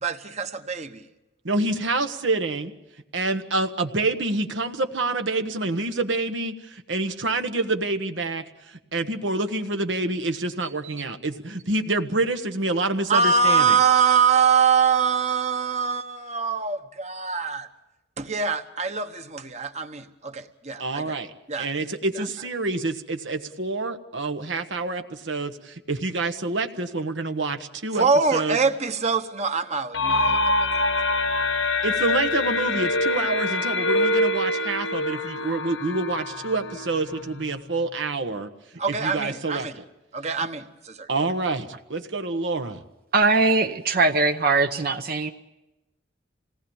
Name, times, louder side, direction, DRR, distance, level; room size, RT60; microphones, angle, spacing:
voice 1, 0.0-1.0 10.8-10.9 13.1-17.7 18.2-21.2 21.5-21.7 22.1-22.3 27.9-30.8 38.8-39.7 40.1-41.1, right 5 dB, 40° right, 1.2 m, -24 dB
voice 2, 1.4-2.7 3.1-13.8 20.8-28.1 28.3-28.6 31.8-38.5 39.0-39.8 41.1-42.8, right 2 dB, 80° right, 1.3 m, -27 dB
sound 1, 29.9-37.6, left 2 dB, 85° left, 1.6 m, -25 dB
voice 3, 43.1-45.3, right 3 dB, 55° right, 0.8 m, -21 dB
26.5 x 18.5 x 7.2 m
head